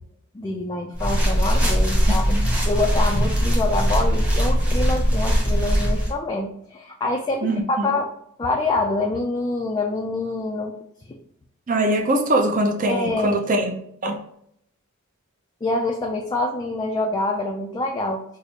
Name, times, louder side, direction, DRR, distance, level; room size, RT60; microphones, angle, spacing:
voice 1, 0.3-2.4 2.7-8.1 8.4-10.8 11.1-11.2 12.9-13.4 15.6-18.4, left 2 dB, 20° left, 1 dB, 0.3 m, -26 dB
sound 1, 0.9-6.1, equal, 5° right, 0.8 m, -20 dB
voice 2, 7.4-7.9 11.7-13.7 14.0-14.2, right 1 dB, 40° right, 4 dB, 0.5 m, -22 dB
4.8 x 2.0 x 2.8 m, 0.72 s
head